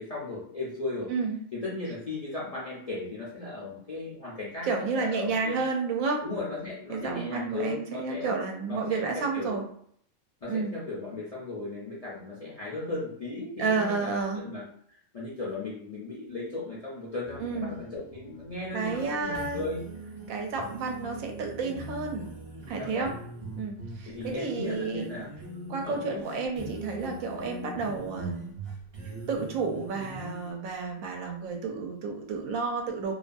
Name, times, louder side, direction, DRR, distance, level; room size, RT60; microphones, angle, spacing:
voice 1, 0.0-1.1 1.5-5.6 6.2-8.3 8.7-9.6 10.4-14.6 15.1-19.9 22.8-23.1 24.0-25.3 25.8-26.4, left 2 dB, 55° left, -7 dB, 0.4 m, -36 dB
voice 2, 4.6-6.2 6.9-9.6 10.5-10.7 13.6-14.4 17.4-17.8 18.7-19.6 20.3-22.3 22.7-23.1 23.6-25.1 25.7-28.6 29.3-33.1, right 4 dB, 80° right, 2 dB, 1.0 m, -31 dB
sound 1, 17.2-30.5, right 1 dB, 40° right, 0.5 m, -42 dB
2.6 x 2.2 x 2.5 m, 0.63 s
omnidirectional pair, 1.4 m